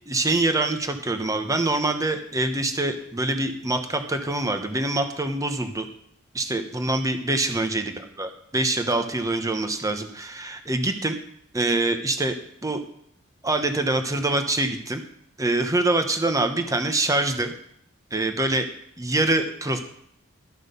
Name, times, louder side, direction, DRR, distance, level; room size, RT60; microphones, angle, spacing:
voice 1, 0.1-5.9 6.3-7.8 8.2-11.2 11.5-12.4 12.6-12.8 13.4-15.0 15.4-17.5 18.1-18.7 19.0-19.8, right 2 dB, 15° right, 7 dB, 1.0 m, -25 dB
12.5 x 6.1 x 6.8 m, 0.69 s
head